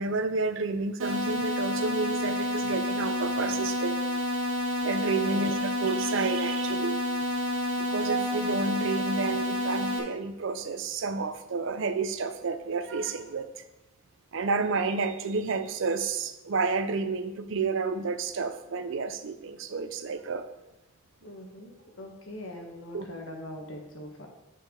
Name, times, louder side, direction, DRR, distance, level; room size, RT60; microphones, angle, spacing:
voice 1, 0.0-4.0 4.8-7.0 7.8-13.6 14.3-20.5 22.9-23.1, right 4 dB, 65° right, 10 dB, 0.5 m, -30 dB
sound 1, 1.0-10.0, left 1 dB, 85° right, 1.3 m, -29 dB
voice 2, 21.2-24.3, left 1 dB, 75° left, 1 dB, 1.4 m, -42 dB
8.9 x 4.6 x 3.8 m, 0.97 s
head